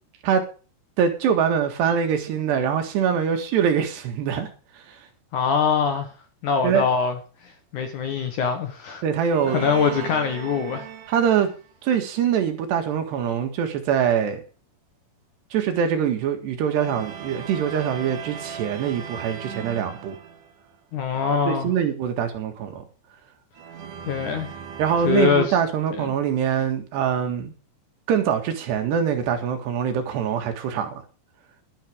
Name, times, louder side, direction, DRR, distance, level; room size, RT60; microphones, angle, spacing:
voice 1, 1.0-4.5 4.8-5.0 6.6-6.9 9.0-9.6 11.1-11.5 11.8-14.4 15.5-20.2 21.5-22.8 24.8-27.5 28.1-31.0, right 8 dB, 75° right, 4.0 m, -23 dB
voice 2, 5.3-6.1 6.4-7.2 7.4-9.0 9.5-10.9 20.9-21.7 24.1-24.5 25.0-25.6 26.0-26.1, left 6 dB, 60° left, 2.2 m, -23 dB
sound 1, 9.3-11.7 16.7-20.7 23.5-26.0, right 7 dB, 60° right, 2.7 m, -38 dB
12.0 x 10.5 x 5.1 m
omnidirectional pair, 4.9 m